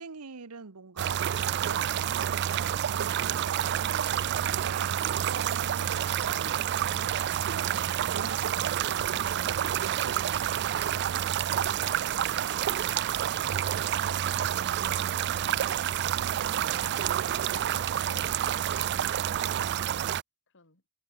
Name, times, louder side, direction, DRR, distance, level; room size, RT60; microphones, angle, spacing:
voice 1, 0.0-11.1 16.2-17.2, right 5 dB, 85° right, 1.0 m, -44 dB
sound 1, 1.0-20.2, right 10 dB, 50° right, 0.4 m, -29 dB
voice 2, 4.1-5.1 8.3-8.8 13.7-15.9 17.2-19.8 20.5-20.8, left 2 dB, 55° left, 4.0 m, -55 dB
head